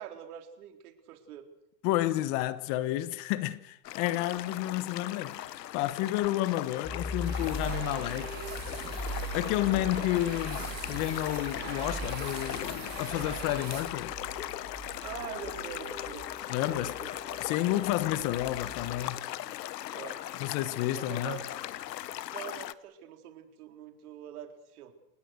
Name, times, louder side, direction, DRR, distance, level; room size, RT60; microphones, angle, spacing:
voice 1, 0.0-1.4 10.0-10.4 14.3-14.4 15.0-16.2 16.6-17.1 17.5-17.7 18.4-18.5 19.9-20.2 20.9-21.5 22.3-24.9, right 10 dB, 65° right, 4.2 m, -44 dB
voice 2, 1.8-5.4 5.7-8.4 8.7-8.8 9.3-14.1 16.5-17.0 17.4-19.2 20.3-21.4, left 15 dB, 35° left, 1.2 m, -31 dB
sound 1, 3.8-22.7, left 13 dB, 85° left, 1.3 m, -39 dB
sound 2, 6.8-19.1, equal, 10° left, 5.8 m, -41 dB
sound 3, 7.2-14.3, right 6 dB, 20° right, 6.6 m, -43 dB
30.0 x 19.0 x 6.5 m
supercardioid pair, 155°, 49 cm